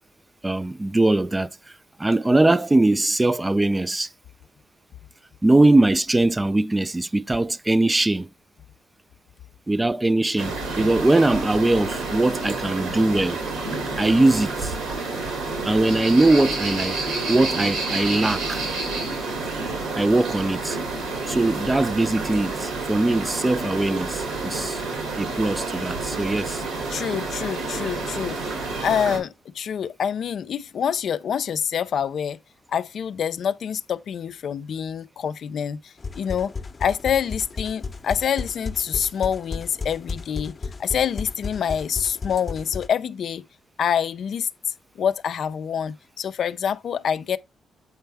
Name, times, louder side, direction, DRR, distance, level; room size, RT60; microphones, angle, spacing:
voice 1, 0.4-1.5 2.0-4.1 5.4-8.3 9.7-13.4 14.0-14.7 15.6-17.0 17.3-18.7 20.0-20.8 21.3-24.8 25.2-26.6, right 2 dB, 20° right, 0.4 m, -21 dB
sound 1, 10.4-29.2, right 3 dB, 90° right, 2.7 m, -29 dB
voice 2, 26.9-32.4 32.7-36.5 36.8-43.4 43.8-47.4, left 8 dB, 70° left, 0.4 m, -26 dB
sound 2, 36.0-42.9, left 4 dB, 40° left, 0.7 m, -34 dB
7.8 x 4.4 x 3.4 m
cardioid pair, 65°, 0 cm